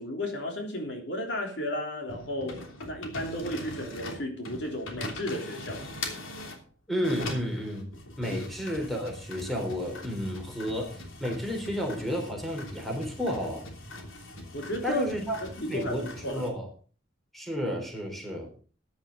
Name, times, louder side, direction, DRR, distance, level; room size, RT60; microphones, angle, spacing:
voice 1, 0.0-5.8 8.3-8.4 14.5-15.0 15.5-16.5, left 1 dB, 60° left, 3.4 m, -34 dB
sound 1, 2.1-6.6 7.0-16.5, left 2 dB, 90° left, 3.1 m, -41 dB
voice 2, 6.9-7.9 8.2-13.6 14.8-15.4 15.7-16.7 17.3-18.5, equal, ahead, 3.7 m, -32 dB
14.5 x 10.5 x 3.9 m
head